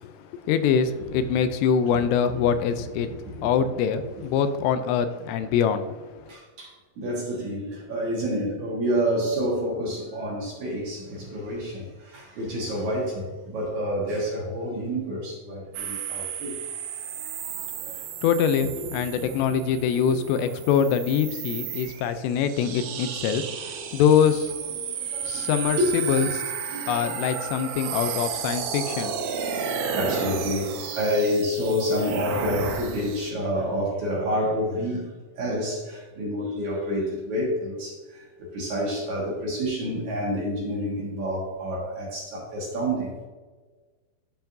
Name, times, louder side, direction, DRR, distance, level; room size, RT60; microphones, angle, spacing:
voice 1, 0.0-3.1 3.4-6.0 18.2-24.5 25.2-25.8 26.1-26.4 26.9-29.1, left 7 dB, 85° left, 10 dB, 2.7 m, -24 dB
voice 2, 1.9-2.3 2.9-3.5 6.3-16.6 17.1-17.9 18.8-20.0 20.4-20.5 22.8-23.3 24.8-26.3 26.6-27.1 27.8-28.0 29.9-43.1, equal, 60° right, -4 dB, 2.3 m, -29 dB
sound 1, 15.7-33.3, right 6 dB, 85° right, 2.0 m, -33 dB
13.0 x 4.6 x 2.6 m, 1.3 s
omnidirectional pair, 4.9 m